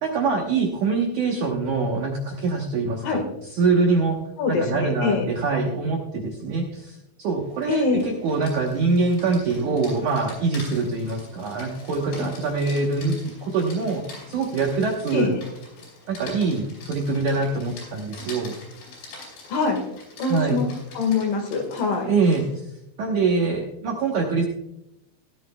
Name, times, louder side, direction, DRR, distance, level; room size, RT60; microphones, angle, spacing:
voice 1, 0.0-4.2 4.5-14.0 14.3-15.3 16.1-18.5 20.3-20.6 22.1-22.6 23.0-24.5, right 4 dB, 70° right, 0 dB, 1.9 m, -24 dB
voice 2, 4.4-5.3 7.7-8.0 15.1-15.4 19.5-19.8 20.2-20.7 20.9-22.1, left 4 dB, 60° left, 4 dB, 2.9 m, -24 dB
Rain, 7.4-22.6, left 3 dB, 80° left, 7.0 m, -44 dB
16.5 x 13.0 x 2.3 m, 0.83 s
omnidirectional pair, 5.0 m